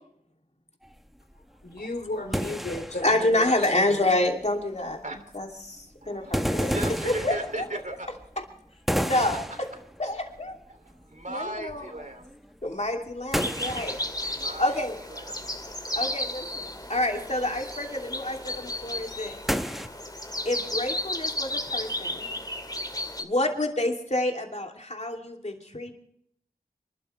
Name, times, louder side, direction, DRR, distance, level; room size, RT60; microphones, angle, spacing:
sound 1, 0.8-1.0 1.3-1.4 1.6-4.2 4.5-5.5 6.2-8.5 8.9-10.6 10.9-11.3 11.6-15.0 15.3-16.0 16.6-19.9, equal, ahead, 1.0 m, -32 dB
voice 1, 1.6-4.0, left 2 dB, 75° left, 3 dB, 3.3 m, -34 dB
voice 2, 3.0-5.0 5.3-6.8 7.0-7.6 9.0-9.7 10.0-10.6 11.3-11.9 12.6-15.0 15.9-19.4 20.4-22.3 23.2-25.9, left 1 dB, 45° left, 2 dB, 2.9 m, -28 dB
voice 3, 6.0-8.1 10.7-12.2 14.4-14.8 15.1-15.2, right 2 dB, 50° right, 6 dB, 2.9 m, -37 dB
sound 2, 13.4-23.2, left 1 dB, 25° left, 2.2 m, -34 dB
26.5 x 12.0 x 3.3 m, 0.68 s
wide cardioid pair, 50°, 17 cm